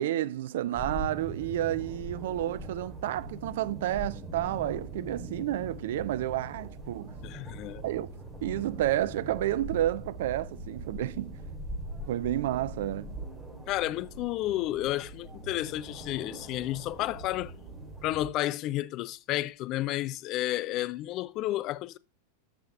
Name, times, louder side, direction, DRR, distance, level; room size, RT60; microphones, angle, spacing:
voice 1, 0.0-7.1 7.8-8.1 8.4-11.4 12.1-13.2, right 13 dB, 55° right, 0.4 m, -30 dB
sound 1, 0.7-18.3, right 1 dB, 20° right, 3.4 m, -41 dB
voice 2, 7.2-7.8 13.7-17.5 18.0-22.0, left 15 dB, 40° left, 0.4 m, -31 dB
13.5 x 5.7 x 2.6 m
figure-of-eight pair, 90°, 0 cm